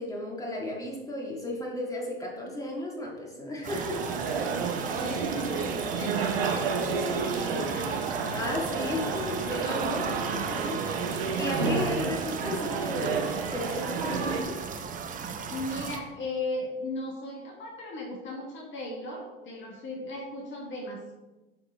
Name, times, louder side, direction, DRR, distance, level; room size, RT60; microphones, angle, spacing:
voice 1, 0.0-4.0 5.0-5.6 8.3-14.6, left 1 dB, 10° left, -2 dB, 1.9 m, -34 dB
sound 1, 3.6-16.0, right 6 dB, 25° right, 0.8 m, -37 dB
sound 2, 3.7-14.4, right 5 dB, 80° right, 1.0 m, -31 dB
voice 2, 4.2-8.1 8.8-9.2 10.1-10.2 12.0-12.2 15.5-21.1, left 2 dB, 40° left, 0 dB, 1.6 m, -38 dB
9.1 x 3.8 x 3.5 m, 1.1 s
hypercardioid pair, 85°, 29 cm